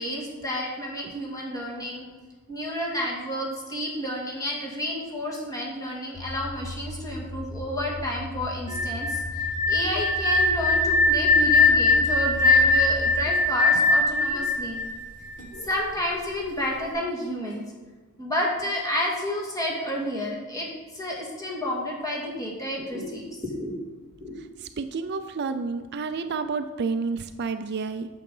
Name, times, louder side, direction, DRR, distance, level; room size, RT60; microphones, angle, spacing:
voice 1, 0.0-2.1 2.5-14.8 15.6-17.6 18.2-20.7 20.9-23.8 24.2-24.4, left 1 dB, 15° left, -3 dB, 2.2 m, -30 dB
sound 1, 6.1-13.2, right 1 dB, 65° left, 1.1 m, -36 dB
sound 2, 8.7-15.6, left 3 dB, 35° left, 1.3 m, -21 dB
voice 2, 24.8-28.1, right 4 dB, 50° right, 9 dB, 0.4 m, -30 dB
8.5 x 7.0 x 5.5 m, 1.3 s
head